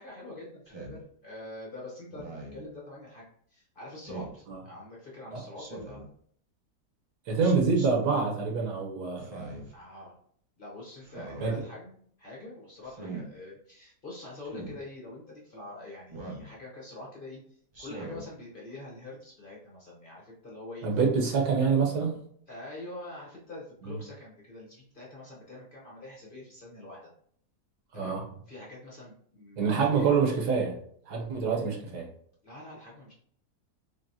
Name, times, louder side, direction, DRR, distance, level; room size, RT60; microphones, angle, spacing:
voice 1, 0.0-6.0 9.7-10.2 10.6-20.9 21.3-21.4 22.5-27.1 27.9-28.2 28.5-30.2 32.4-33.1, left 2 dB, 40° left, -5 dB, 0.9 m, -45 dB
Speech synthesizer, 0.7-1.0 2.1-2.6 4.1-4.4 5.6-6.1 7.4-7.9 9.2-9.7 11.0-11.5 12.8-13.3 14.4-14.8 16.1-16.5 17.7-18.2, right 3 dB, 40° right, 0.4 m, -42 dB
voice 2, 7.3-9.6 11.4-11.5 20.8-22.2 23.8-24.0 27.9-28.2 29.6-30.7 31.1-32.1, right 5 dB, 75° right, 1 dB, 1.4 m, -26 dB
3.8 x 3.3 x 2.7 m, 0.63 s
omnidirectional pair, 1.7 m